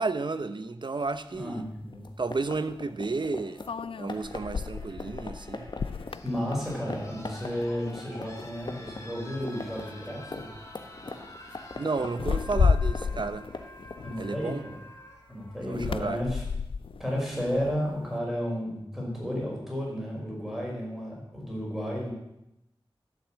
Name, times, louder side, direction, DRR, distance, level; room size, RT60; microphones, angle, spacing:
voice 1, 0.0-1.6 2.2-3.6 4.0-5.7 11.8-13.5 14.2-14.6 15.7-16.2, right 3 dB, 55° right, 12 dB, 0.8 m, -32 dB
sound 1, 1.3-1.4 3.6-7.3 7.6-7.9 8.4-9.0 9.9-10.1 10.4-10.7 12.1-14.7 15.7-18.1, left 5 dB, 75° left, 0.4 m, -31 dB
voice 2, 1.3-2.1 6.2-10.5 14.0-14.8 15.3-16.4 17.0-22.1, equal, 5° right, -3 dB, 5.5 m, -32 dB
sound 2, 1.9-6.6 6.9-7.0 7.2-9.0 9.3-14.0, left 3 dB, 55° left, 1.4 m, -39 dB
sound 3, 2.3-16.3 17.5-17.6, left 1 dB, 35° left, 2.7 m, -49 dB
12.5 x 7.5 x 7.6 m, 0.85 s
wide cardioid pair, 80°, 9 cm